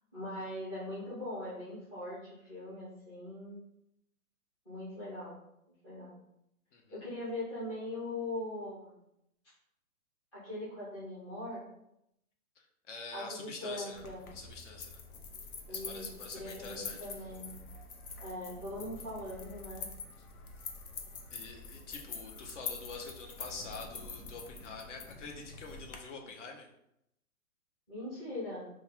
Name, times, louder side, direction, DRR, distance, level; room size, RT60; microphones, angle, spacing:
voice 1, 0.1-3.6 4.6-5.4 5.8-6.1 6.9-9.0 10.3-11.7 13.1-14.2 15.7-16.1 16.3-17.6 18.2-19.9 27.9-28.7, left 1 dB, 5° left, -12 dB, 0.4 m, -41 dB
voice 2, 12.6-14.0 14.3-15.0 15.7-17.0 21.3-26.7, left 4 dB, 55° left, 2 dB, 0.9 m, -46 dB
sound 1, 13.9-26.0, left 4 dB, 85° left, 0.9 m, -45 dB
3.2 x 2.3 x 4.3 m, 0.79 s
hypercardioid pair, 155°, 43 cm